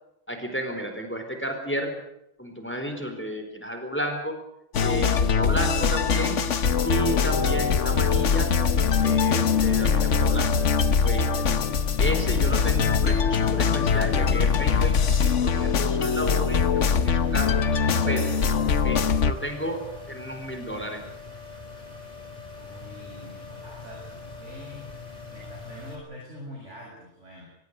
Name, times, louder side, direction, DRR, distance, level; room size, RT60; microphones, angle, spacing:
voice 1, 0.3-2.0 2.4-4.4 4.8-6.4 6.8-8.5 9.0-10.6 11.0-11.3 12.0-18.3 18.8-21.0, right 1 dB, 10° left, 5 dB, 4.4 m, -32 dB
sound 1, 4.7-19.3, left 6 dB, 75° left, 1.4 m, -22 dB
sound 2, 6.9-26.0, left 4 dB, 30° left, 5.0 m, -41 dB
voice 2, 22.6-24.9 25.3-27.5, equal, 75° right, -3 dB, 8.1 m, -44 dB
24.0 x 21.5 x 6.8 m, 0.82 s
omnidirectional pair, 1.2 m